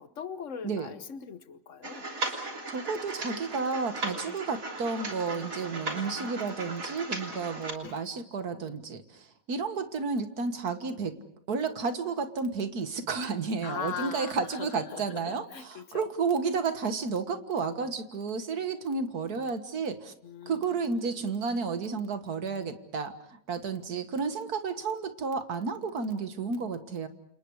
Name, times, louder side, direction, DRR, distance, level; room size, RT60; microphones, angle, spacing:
voice 1, 0.0-2.1 4.1-4.3 7.8-8.0 13.6-16.1 20.2-21.3, left 7 dB, 55° left, 1.4 m, -41 dB
sound 1, 1.8-7.7, right 2 dB, 65° right, 3.7 m, -37 dB
voice 2, 2.2-11.2 11.5-20.1 20.5-27.1, right 4 dB, 80° right, 2.1 m, -32 dB
29.5 x 28.0 x 4.8 m
omnidirectional pair, 1.6 m